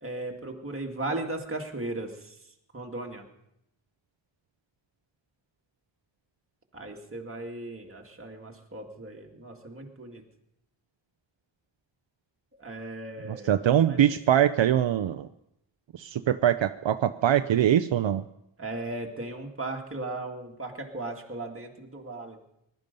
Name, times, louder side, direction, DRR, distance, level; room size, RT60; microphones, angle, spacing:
voice 1, 0.0-2.4 2.7-3.2 6.7-10.2 12.5-13.5 13.9-14.1 18.6-22.4, right 2 dB, 30° right, 1 dB, 2.2 m, -37 dB
voice 2, 13.2-15.3 15.9-18.2, right 10 dB, 75° right, 10 dB, 0.6 m, -23 dB
20.5 x 12.0 x 5.3 m, 0.79 s
wide cardioid pair, 110°, 46 cm